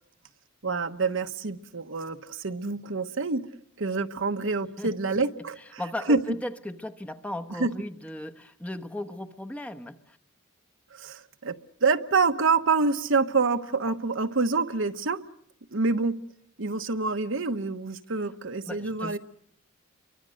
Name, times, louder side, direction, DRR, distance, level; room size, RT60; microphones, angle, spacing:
voice 1, 0.6-3.5 3.8-5.8 6.1-6.2 7.6-7.7 10.9-11.5 11.8-15.2 15.7-16.2 16.6-19.2, right 4 dB, 65° right, 8 dB, 1.1 m, -26 dB
voice 2, 5.6-10.2 18.6-19.2, left 1 dB, 5° left, 5 dB, 1.0 m, -36 dB
30.0 x 24.0 x 6.4 m, 0.68 s
head